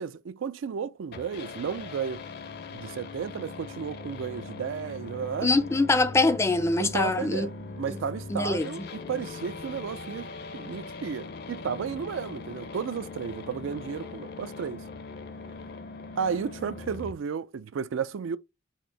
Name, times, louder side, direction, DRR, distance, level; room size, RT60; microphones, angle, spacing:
voice 1, 0.0-2.2 2.7-5.5 6.8-7.5 7.8-14.8 16.2-18.4, right 6 dB, 80° right, 0.4 m, -33 dB
sound 1, 1.1-17.1, left 3 dB, 55° left, 0.6 m, -41 dB
voice 2, 5.4-7.5 7.9-8.0 8.3-8.9, left 3 dB, 15° left, 0.4 m, -24 dB
4.3 x 2.8 x 4.4 m
head